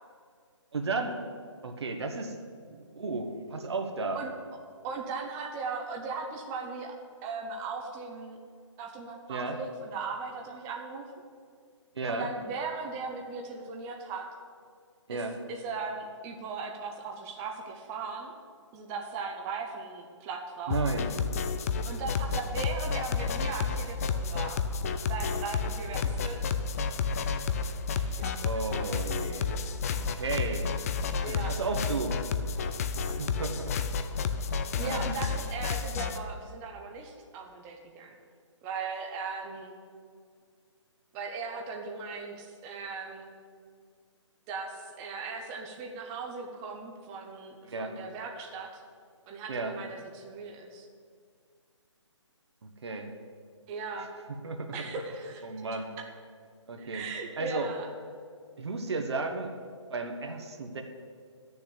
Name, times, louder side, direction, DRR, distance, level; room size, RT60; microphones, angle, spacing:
voice 1, 0.7-1.2 1.6-2.4 2.7-4.2 9.3-9.6 11.9-12.3 15.1-15.4 20.7-21.1 28.4-29.5 30.0-30.7 31.3-32.2 33.1-33.7 34.8-35.2 47.6-48.0 49.5-49.8 52.6-53.1 54.4-54.9 55.4-55.9 56.7-57.1 57.4-57.7 58.6-59.5 59.9-60.8, right 3 dB, 60° right, 4 dB, 1.4 m, -33 dB
voice 2, 4.8-8.4 8.8-11.2 12.1-14.3 15.1-15.2 15.5-18.3 18.7-20.8 21.8-24.6 25.1-26.4 27.9-28.6 31.2-31.6 34.8-38.2 38.6-39.7 41.1-43.3 44.5-48.8 49.3-50.9 53.7-54.1 54.7-55.4 56.8-57.9, right 4 dB, 15° right, 2 dB, 0.9 m, -38 dB
House Music Loop, 20.7-36.2, left 5 dB, 30° left, 0.6 m, -31 dB
11.5 x 7.0 x 8.2 m, 2.1 s
figure-of-eight pair, 145°, 16 cm